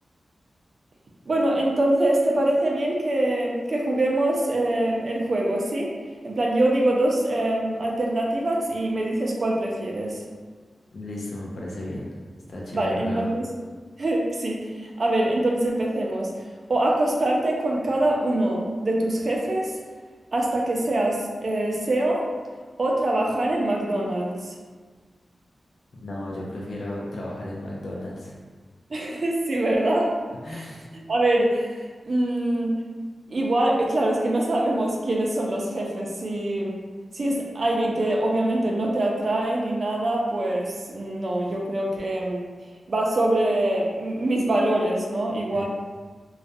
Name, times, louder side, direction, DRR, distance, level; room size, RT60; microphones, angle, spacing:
voice 1, 1.3-5.9 6.2-10.2 12.7-13.4 14.0-14.6 15.0-16.3 16.7-19.7 20.3-22.3 22.8-24.5 28.9-30.1 30.6-30.7 31.1-31.8 32.1-32.7 33.3-36.8 37.1-42.5 42.9-45.6, right 1 dB, 45° right, -1 dB, 0.4 m, -24 dB
voice 2, 10.9-12.0 12.5-13.3 25.9-28.4 30.4-30.9 45.5-45.6, left 1 dB, 60° left, -4 dB, 0.4 m, -34 dB
2.3 x 2.1 x 2.5 m, 1.5 s
wide cardioid pair, 145°, 0 cm